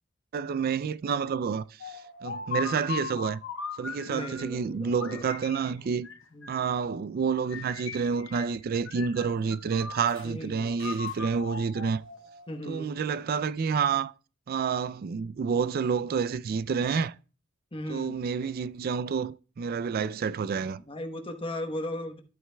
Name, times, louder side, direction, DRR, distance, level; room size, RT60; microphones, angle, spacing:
voice 1, 0.3-3.4 3.8-6.1 6.5-12.0 12.7-14.1 14.5-17.1 17.9-20.8, right 6 dB, 50° right, 0.3 m, -29 dB
sound 1, 1.8-4.6 5.0-6.8 7.5-8.6 8.9-10.3 10.8-12.6, left 6 dB, 70° left, 1.0 m, -39 dB
voice 2, 4.1-5.3 5.7-5.9 6.3-6.7 10.2-10.8 12.5-12.9 17.7-18.2 20.9-22.2, left 1 dB, 25° left, 1.0 m, -37 dB
13.0 x 8.9 x 2.2 m
head